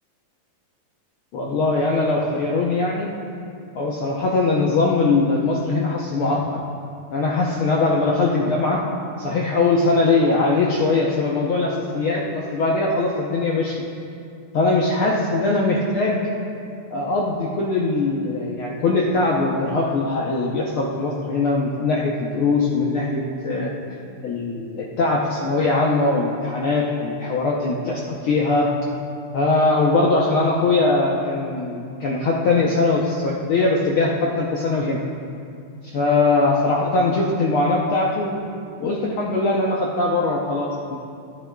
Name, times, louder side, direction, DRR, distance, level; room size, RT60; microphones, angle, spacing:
voice 1, 1.3-3.1 3.8-6.6 7.1-8.8 9.2-13.8 14.5-16.2 16.9-23.7 24.2-28.7 29.3-35.0 35.9-38.4 38.8-41.0, left 3 dB, 75° left, -3 dB, 1.2 m, -21 dB
17.5 x 9.9 x 2.3 m, 2.5 s
omnidirectional pair, 3.4 m